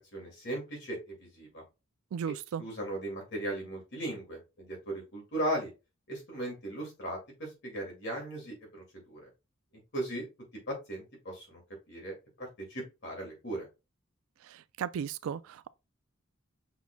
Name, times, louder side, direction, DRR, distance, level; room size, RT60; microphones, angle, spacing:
voice 1, 0.1-1.6 2.3-5.7 6.1-9.3 9.9-10.3 10.7-11.6 11.9-13.7, right 1 dB, 55° left, 2.3 m, -37 dB
voice 2, 2.1-2.6 14.8-15.7, right 7 dB, 80° right, 0.3 m, -35 dB
5.7 x 4.2 x 2.2 m
head